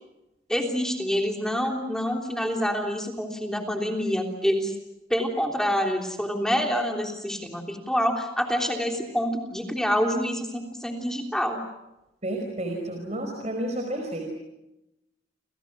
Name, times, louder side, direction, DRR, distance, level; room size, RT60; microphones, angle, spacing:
voice 1, 0.5-4.7 5.1-11.6, equal, 5° left, 2 dB, 3.3 m, -27 dB
voice 2, 12.2-14.3, right 1 dB, 40° right, 3 dB, 4.9 m, -31 dB
30.0 x 27.5 x 6.1 m, 0.92 s
head